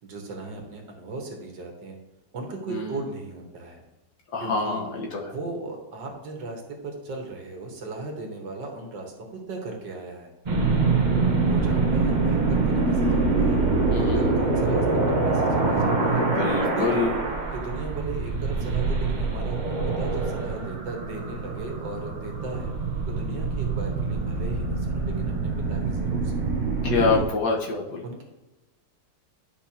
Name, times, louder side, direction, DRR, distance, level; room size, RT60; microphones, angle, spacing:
voice 1, 0.0-2.0 2.3-3.8 4.4-4.8 5.2-10.3 11.4-13.6 14.1-16.2 16.6-17.1 17.5-22.7 23.1-26.4 27.1-27.2 28.0-28.2, right 2 dB, 65° right, 1 dB, 1.9 m, -37 dB
voice 2, 4.3-5.3 13.9-14.3 16.1-17.2 26.8-28.0, left 4 dB, 60° left, -2 dB, 1.7 m, -26 dB
sound 1, 10.5-27.2, right 3 dB, 35° right, 0.8 m, -25 dB
10.5 x 5.6 x 2.9 m, 1.1 s
omnidirectional pair, 2.1 m